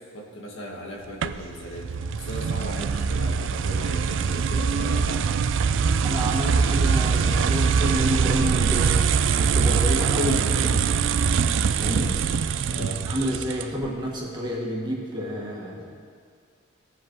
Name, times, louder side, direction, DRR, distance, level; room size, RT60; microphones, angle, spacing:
voice 1, 0.0-5.4 10.1-10.7 12.7-13.4, equal, 80° left, 0 dB, 1.6 m, -38 dB
sound 1, 1.2-13.9, right 6 dB, 65° right, 0.4 m, -23 dB
voice 2, 6.0-8.9 9.4-10.4 10.7-10.9 11.8-12.2 12.7-15.9, equal, 20° right, -3 dB, 1.7 m, -29 dB
18.0 x 7.5 x 3.1 m, 2.1 s
head